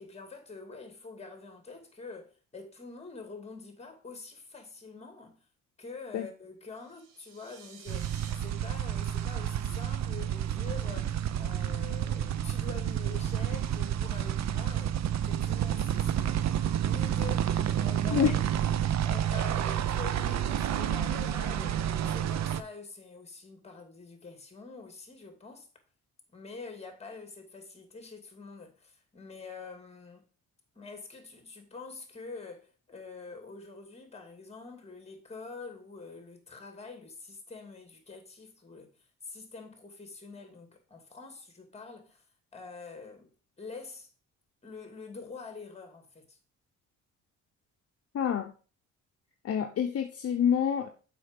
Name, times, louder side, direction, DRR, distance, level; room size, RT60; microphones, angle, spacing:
voice 1, 0.0-5.4 5.8-15.0 15.3-16.4 16.8-17.5 17.8-18.3 19.1-21.8 22.1-25.7 26.3-30.3 30.7-38.9 39.2-42.2 42.5-43.3 43.6-44.1 44.6-46.4, left 4 dB, 20° left, 2.5 m, -46 dB
sound 1, 6.7-8.3, right 6 dB, 85° right, 1.5 m, -51 dB
sound 2, 7.9-22.6, right 10 dB, 65° right, 0.7 m, -30 dB
voice 2, 48.1-48.5 49.4-50.9, left 8 dB, 50° left, 0.8 m, -27 dB
7.0 x 5.2 x 5.3 m
cardioid pair, 90°, 30 cm